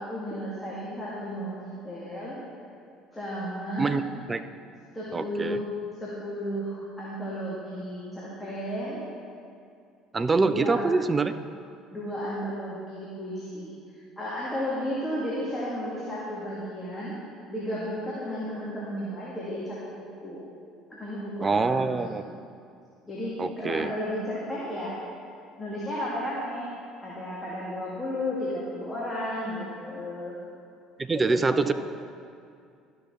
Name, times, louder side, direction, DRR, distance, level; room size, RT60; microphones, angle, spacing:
voice 1, 0.0-2.4 3.1-4.0 4.9-5.6 6.0-9.0 10.4-10.8 11.9-17.2 17.5-19.9 20.2-20.4 20.9-21.9 23.0-24.9 25.6-26.7 27.0-30.3 31.1-31.7, equal, 15° left, -7 dB, 2.0 m, -33 dB
voice 2, 5.1-5.6 10.1-11.3 21.4-22.2 23.4-23.9 31.0-31.7, right 4 dB, 25° right, 11 dB, 0.5 m, -25 dB
13.0 x 5.9 x 4.4 m, 2.4 s
figure-of-eight pair, 60°, 0 cm